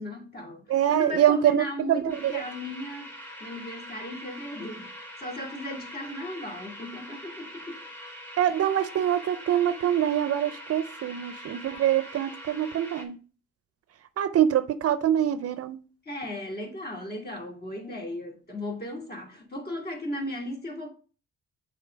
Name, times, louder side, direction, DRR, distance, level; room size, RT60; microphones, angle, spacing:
voice 1, 0.0-3.1 3.4-4.9 5.2-7.8 16.1-20.9, left 1 dB, 30° left, 2.3 m, -36 dB
voice 2, 0.7-2.4 8.4-13.2 14.2-15.8, right 11 dB, 50° right, 0.5 m, -24 dB
sound 1, 2.1-13.0, equal, 5° left, 2.4 m, -43 dB
6.6 x 3.8 x 4.9 m
cardioid pair, 90°, 30 cm